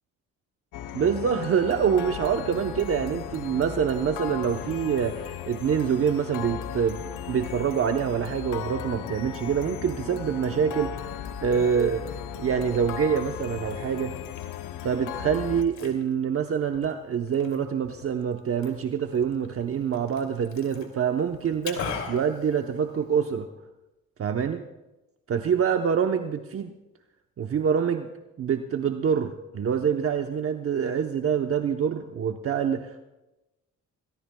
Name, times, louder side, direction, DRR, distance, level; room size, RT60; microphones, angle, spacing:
sound 1, 0.7-15.6, left 9 dB, 85° left, 0.8 m, -36 dB
voice 1, 0.9-11.1 11.4-14.1 14.8-21.8 22.1-23.5 24.2-24.6 25.3-26.7 27.4-28.1 28.4-33.0, right 7 dB, 50° right, 5 dB, 0.9 m, -26 dB
Liquid, 12.3-23.3, left 5 dB, 70° left, 2.8 m, -43 dB
27.5 x 17.0 x 2.3 m, 1.0 s
cardioid pair, 90°, 30 cm